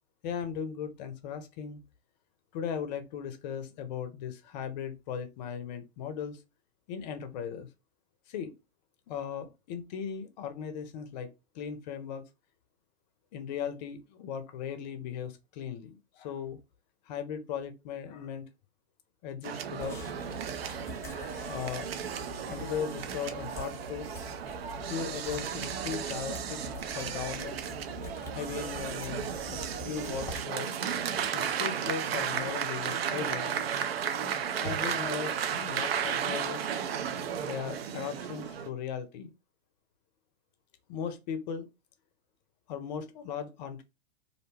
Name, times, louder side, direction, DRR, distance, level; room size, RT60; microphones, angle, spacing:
voice 1, 0.2-1.8 2.5-6.4 6.9-7.7 8.3-8.5 9.1-12.2 13.3-16.6 17.1-18.4 19.2-20.1 21.5-22.0 22.5-24.1 24.9-26.6 26.9-27.6 28.3-30.7 31.3-33.5 34.6-36.7 37.4-39.3 40.9-41.7 42.7-43.8, left 7 dB, 40° left, 0.5 m, -38 dB
sound 1, 19.4-38.7, right 8 dB, 65° right, 0.5 m, -34 dB
sound 2, 19.8-30.5, left 3 dB, 10° left, 0.9 m, -45 dB
2.5 x 2.1 x 3.1 m
figure-of-eight pair, 110°, 33 cm